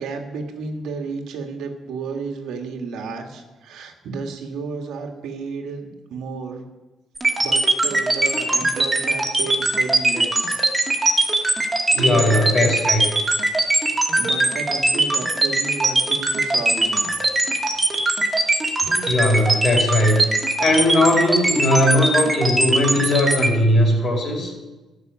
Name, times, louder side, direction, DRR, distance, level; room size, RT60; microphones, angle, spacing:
voice 1, 0.0-6.6 7.4-10.6 11.2-12.7 14.2-17.1 17.7-18.0 18.8-18.9 20.2-20.3, right 4 dB, 80° right, 4 dB, 1.8 m, -32 dB
sound 1, 7.2-23.5, right 2 dB, 20° right, 2.2 m, -20 dB
voice 2, 11.9-13.0 18.8-20.2 20.6-24.5, left 1 dB, 50° left, 0 dB, 5.0 m, -19 dB
12.0 x 6.7 x 9.4 m, 1.1 s
cardioid pair, 90°, 0 cm